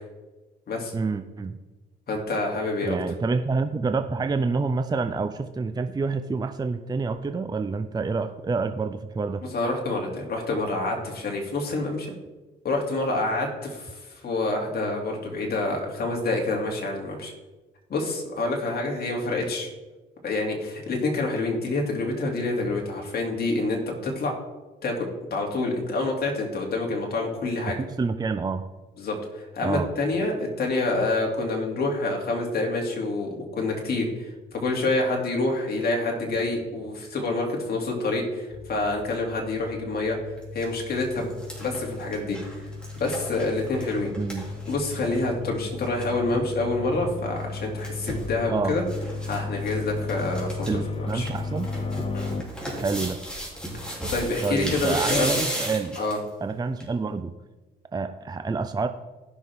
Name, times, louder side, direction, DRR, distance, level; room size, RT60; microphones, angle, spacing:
voice 1, 0.9-1.6 2.8-9.4 28.0-28.7 29.6-29.9 44.2-44.5 48.5-48.8 50.7-51.7 52.8-53.2 54.4-56.0 56.4-57.3 57.9-58.9, right 4 dB, 20° right, 9 dB, 0.5 m, -27 dB
voice 2, 2.1-2.9 9.5-12.1 12.6-17.3 17.9-19.7 20.2-24.4 24.8-27.8 29.0-40.2 40.5-41.3 41.6-42.4 43.0-44.1 44.7-48.8 49.2-51.3 52.1-52.3 53.8-55.4 56.0-56.2, left 2 dB, 50° left, 0 dB, 2.8 m, -27 dB
sound 1, 38.5-52.4, left 3 dB, 30° left, 0.9 m, -35 dB
sound 2, 40.4-40.6 41.0-45.3 45.6-45.7 45.8-46.1 47.4-48.3 48.9-49.4 49.6-49.7 50.1-50.7 51.1-56.3 56.8-56.9, equal, 5° left, 3.2 m, -34 dB
15.5 x 6.2 x 3.6 m, 1.2 s
cardioid pair, 90°, 20 cm